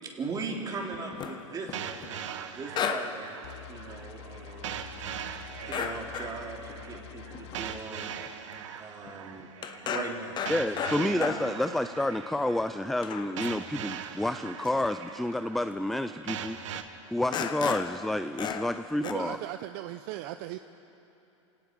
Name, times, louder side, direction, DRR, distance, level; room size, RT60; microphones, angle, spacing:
voice 1, 0.0-4.9 5.6-8.1 8.8-9.5 9.8-10.4 10.8-11.5, right 4 dB, 25° right, 0 dB, 3.4 m, -39 dB
sound 1, 0.9-2.1 2.7-3.2 3.5-3.6 5.7-6.4 6.7-6.8 7.3-7.7 8.3-8.4 8.5-8.8 9.1-11.6 12.2-12.3 12.7-12.8 13.0-13.9 14.6-14.8 15.7-15.8 16.8-16.9 17.3-18.0 18.4-18.8 19.0-19.1, left 7 dB, 25° left, 1.1 m, -34 dB
sound 2, 1.7-16.8, right 8 dB, 75° right, 1.4 m, -41 dB
sound 3, 3.4-7.8, left 9 dB, 55° left, 0.9 m, -46 dB
voice 2, 10.5-16.6 17.1-19.4, left 1 dB, ahead, 10 dB, 0.4 m, -29 dB
voice 3, 19.0-20.6, right 14 dB, 50° right, 10 dB, 0.6 m, -37 dB
27.0 x 18.0 x 5.3 m, 2.9 s
hypercardioid pair, 115°, 16 cm